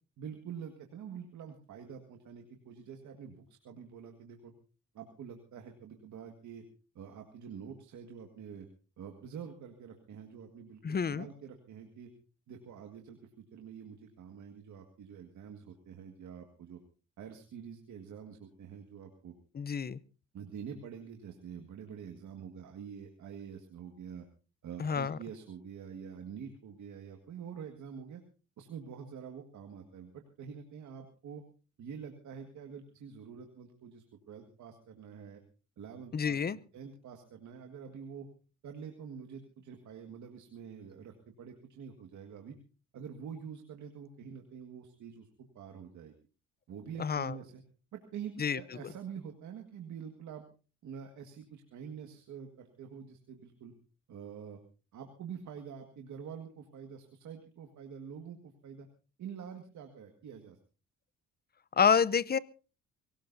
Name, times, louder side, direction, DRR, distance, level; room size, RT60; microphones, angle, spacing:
voice 1, 0.2-4.5 4.9-6.6 7.0-8.7 9.0-12.1 12.5-16.8 17.2-19.3 20.3-24.3 24.6-28.2 28.6-31.4 31.8-35.4 35.8-38.3 38.6-42.6 42.9-46.1 46.7-47.6 47.9-50.4 50.8-53.7 54.1-54.6 54.9-58.9 59.2-60.6, right 7 dB, 70° right, 4 dB, 1.9 m, -46 dB
voice 2, 10.8-11.3 19.5-20.0 24.8-25.2 36.1-36.6 47.0-47.3 48.4-48.6 61.8-62.4, left 6 dB, 30° left, 20 dB, 0.7 m, -28 dB
23.0 x 18.0 x 2.7 m, 0.34 s
cardioid pair, 90°, 30 cm